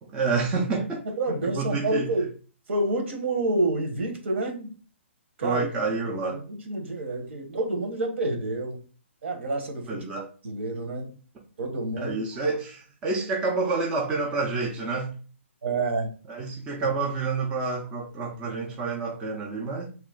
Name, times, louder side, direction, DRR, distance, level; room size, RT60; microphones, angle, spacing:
voice 1, 0.1-1.0 1.4-2.1 5.4-6.4 9.9-10.3 12.0-15.1 16.3-19.9, right 4 dB, 15° right, 0.5 m, -28 dB
voice 2, 1.2-2.3 2.7-4.7 5.4-8.8 9.2-10.0 10.4-11.1 11.6-12.2 15.6-16.1, right 2 dB, 65° right, 1.1 m, -28 dB
3.2 x 2.9 x 3.6 m
hypercardioid pair, 165°, 7 cm